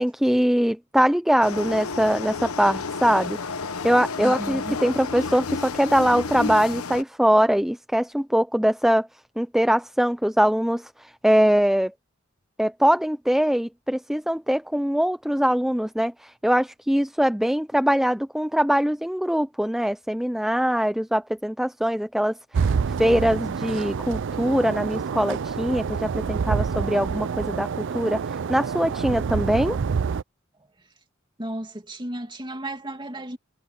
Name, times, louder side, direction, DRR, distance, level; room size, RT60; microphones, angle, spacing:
voice 1, 0.0-3.4 3.8-9.1 9.4-11.9 12.6-22.7 23.0-28.2 28.5-29.8, equal, ahead, 0.5 m, -22 dB
sound 1, 1.4-7.0, left 4 dB, 85° left, 1.1 m, -31 dB
voice 2, 4.2-4.8 31.4-33.4, right 1 dB, 20° right, 2.6 m, -34 dB
sound 2, 22.5-30.2, right 6 dB, 60° right, 0.4 m, -27 dB
head